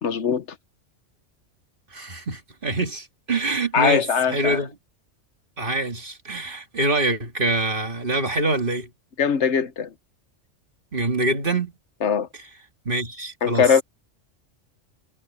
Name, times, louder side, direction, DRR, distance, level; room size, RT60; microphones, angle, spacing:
voice 1, 0.0-0.4 3.7-4.6 9.2-9.9 12.0-12.3 13.4-13.8, left 7 dB, 70° left, 1.3 m, -21 dB
voice 2, 1.9-4.0 4.3-4.7 5.6-8.9 10.9-11.7 12.9-13.8, right 2 dB, 45° right, 2.3 m, -25 dB
omnidirectional pair, 1.2 m